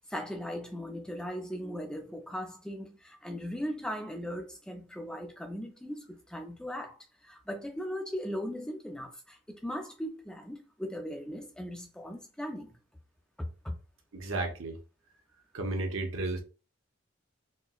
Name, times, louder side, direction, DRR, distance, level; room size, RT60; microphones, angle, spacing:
voice 1, 0.1-7.0 7.2-12.7 13.4-13.8, equal, 5° left, 0.3 m, -38 dB
voice 2, 14.1-14.8 15.5-16.4, right 2 dB, 80° right, 0.9 m, -33 dB
4.2 x 2.0 x 2.3 m
head